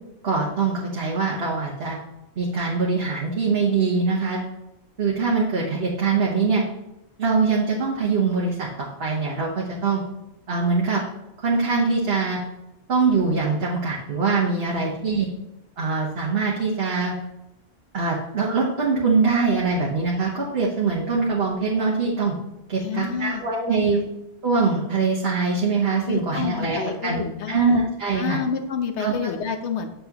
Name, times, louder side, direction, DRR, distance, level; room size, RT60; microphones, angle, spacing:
voice 1, 0.2-2.0 2.4-4.4 5.0-6.6 7.2-10.0 10.5-11.0 11.4-12.4 12.9-15.3 15.8-17.1 17.9-22.3 22.7-24.0 24.4-28.4 29.0-29.1, right 4 dB, 65° right, -4 dB, 1.4 m, -23 dB
voice 2, 14.7-15.1 22.8-23.8 26.1-27.8 28.1-29.9, left 6 dB, 80° left, 7 dB, 1.1 m, -29 dB
8.1 x 6.8 x 2.9 m, 0.92 s
omnidirectional pair, 1.1 m